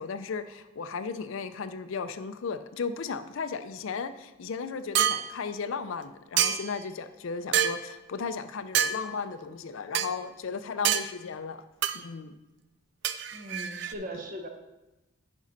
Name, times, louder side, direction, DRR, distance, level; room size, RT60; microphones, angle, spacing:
voice 1, 0.0-11.6 11.9-12.3, left 5 dB, 65° left, 11 dB, 0.4 m, -35 dB
sound 1, 5.0-5.2 6.4-6.8 7.5-7.8 8.8-9.0 10.0-10.1 10.9-11.1 11.8-12.0 13.0-13.9, right 9 dB, 55° right, 0.4 m, -26 dB
voice 2, 13.3-14.5, right 1 dB, 40° right, 4 dB, 0.9 m, -39 dB
10.0 x 5.4 x 4.0 m, 1.0 s
head